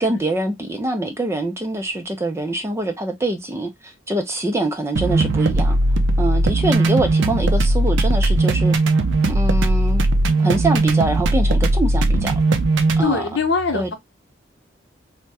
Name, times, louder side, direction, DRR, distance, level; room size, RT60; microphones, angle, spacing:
voice 1, 0.0-5.8 6.2-8.8 9.2-10.1 10.4-12.3 13.0-13.3 13.7-13.9, right 2 dB, 15° right, 0.4 m, -24 dB
sound 1, 5.0-13.0, right 2 dB, 75° right, 0.5 m, -18 dB
voice 2, 13.0-13.9, left 4 dB, 70° left, 0.8 m, -21 dB
3.4 x 2.1 x 2.6 m
head